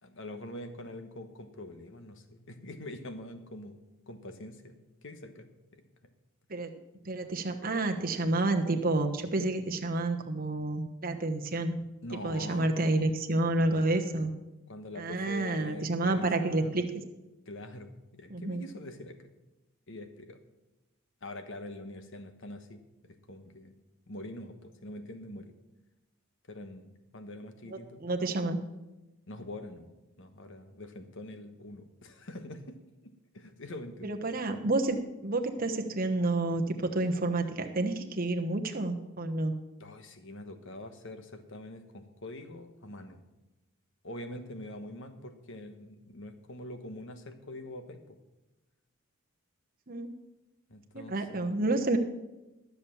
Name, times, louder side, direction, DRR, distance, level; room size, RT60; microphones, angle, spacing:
voice 1, 0.0-5.8 12.0-12.7 13.6-14.3 14.7-16.9 17.5-19.3 19.9-20.4 21.2-23.8 24.1-25.5 26.5-28.1 29.3-29.9 30.2-32.8 33.0-34.2 39.8-43.2 44.0-48.2 50.7-51.5, left 1 dB, 55° left, 8 dB, 1.2 m, -44 dB
voice 2, 7.0-11.8 12.1-14.3 15.0-16.8 18.3-18.6 27.7-28.6 34.0-35.0 35.2-39.5 49.9-50.1 50.9-52.0, right 2 dB, 40° right, 5 dB, 1.1 m, -29 dB
13.0 x 7.1 x 7.1 m, 1.0 s
head